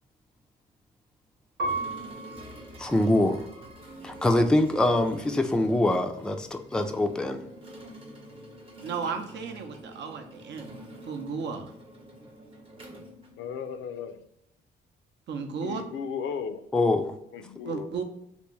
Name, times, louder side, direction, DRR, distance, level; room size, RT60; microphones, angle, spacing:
sound 1, 1.6-13.9, right 1 dB, 25° right, 0.8 m, -46 dB
Piano, 1.6-4.3 5.0-5.7, right 2 dB, 85° right, 1.0 m, -37 dB
voice 1, 2.8-3.4 4.0-7.4 16.7-17.2, left 1 dB, 5° left, 6 dB, 0.4 m, -24 dB
voice 2, 8.8-10.8 11.1-11.7 15.3-15.8 17.7-18.0, right 5 dB, 65° right, 6 dB, 0.7 m, -34 dB
voice 3, 13.4-14.2 15.6-16.6 17.3-17.9, left 6 dB, 75° left, 10 dB, 0.5 m, -35 dB
3.4 x 2.6 x 3.0 m, 0.82 s
cardioid pair, 90°, 20 cm